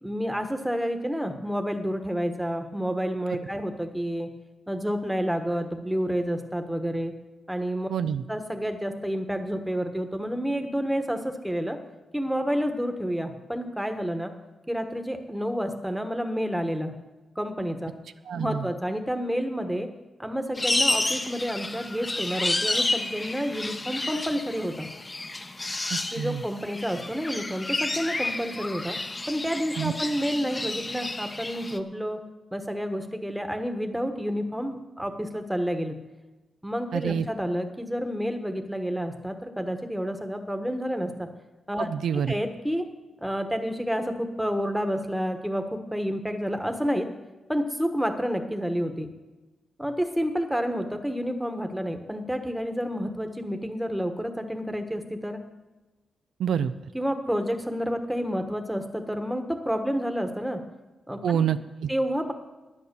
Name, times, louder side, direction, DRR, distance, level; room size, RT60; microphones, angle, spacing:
voice 1, 0.0-4.3 4.7-7.1 7.5-7.9 8.3-11.8 12.1-14.3 14.7-16.9 17.3-17.9 18.4-19.9 20.2-24.9 26.1-29.0 29.3-32.2 32.5-36.0 36.6-41.3 41.7-42.8 43.2-47.1 47.5-49.1 49.8-55.4 56.9-60.6 61.1-61.5 61.9-62.3, equal, 5° right, 6 dB, 1.3 m, -29 dB
voice 2, 7.9-8.2 18.3-18.6 25.9-26.4 29.8-29.9 36.9-37.3 41.9-42.4 56.4-56.7 61.2-61.9, right 8 dB, 90° right, 11 dB, 0.5 m, -27 dB
sound 1, 20.6-31.8, left 2 dB, 20° left, 0.8 m, -30 dB
10.5 x 10.0 x 6.9 m, 1.1 s
wide cardioid pair, 115°, 0 cm